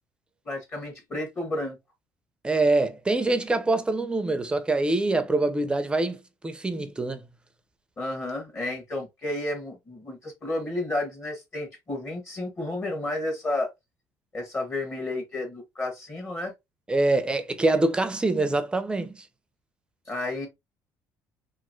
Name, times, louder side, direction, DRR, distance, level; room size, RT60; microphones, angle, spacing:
voice 1, 0.4-1.8 8.0-13.7 14.3-16.5 20.1-20.5, left 2 dB, 35° left, 1.2 m, -31 dB
voice 2, 2.4-6.2 6.4-7.2 16.9-19.3, right 2 dB, 15° right, 0.5 m, -24 dB
2.9 x 2.6 x 2.5 m
cardioid pair, 95°, 7 cm